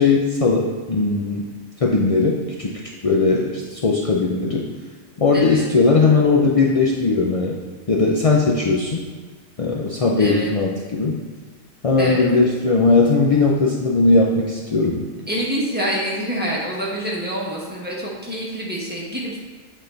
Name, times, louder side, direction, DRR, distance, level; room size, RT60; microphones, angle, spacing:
voice 1, 0.0-1.4 1.8-2.7 3.0-4.7 5.2-7.6 7.9-9.0 9.6-11.2 11.8-15.0, left 3 dB, 55° left, -2 dB, 0.3 m, -18 dB
voice 2, 5.3-5.6 10.2-10.5 12.0-12.2 15.3-19.4, equal, 5° right, -5 dB, 1.3 m, -26 dB
8.8 x 4.2 x 3.9 m, 1.5 s
omnidirectional pair, 1.4 m